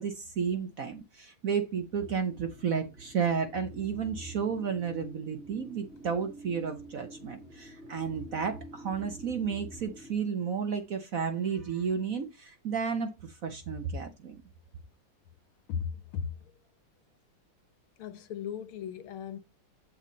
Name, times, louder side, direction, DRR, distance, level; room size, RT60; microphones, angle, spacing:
voice 1, 0.0-14.4, right 6 dB, 55° right, 1.0 m, -32 dB
sound 1, 1.9-10.1, right 1 dB, ahead, 2.4 m, -49 dB
voice 2, 15.7-16.5 18.0-19.4, left 7 dB, 80° left, 1.8 m, -37 dB
8.3 x 7.4 x 3.9 m
omnidirectional pair, 2.3 m